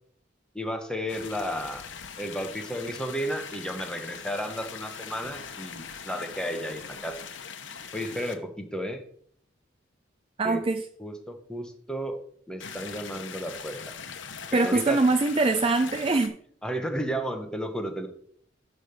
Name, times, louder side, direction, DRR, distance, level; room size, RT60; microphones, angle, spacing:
voice 1, 0.5-1.8 2.2-7.2 7.9-9.0 10.4-10.6 11.0-12.2 12.5-13.8 14.5-15.0 16.6-18.1, equal, 5° left, 5 dB, 0.9 m, -33 dB
sound 1, 1.1-8.4 12.6-16.3, left 6 dB, 70° left, 0.9 m, -41 dB
voice 2, 10.4-10.8 14.5-16.3, right 3 dB, 30° right, 8 dB, 0.4 m, -23 dB
10.0 x 3.4 x 6.7 m, 0.63 s
head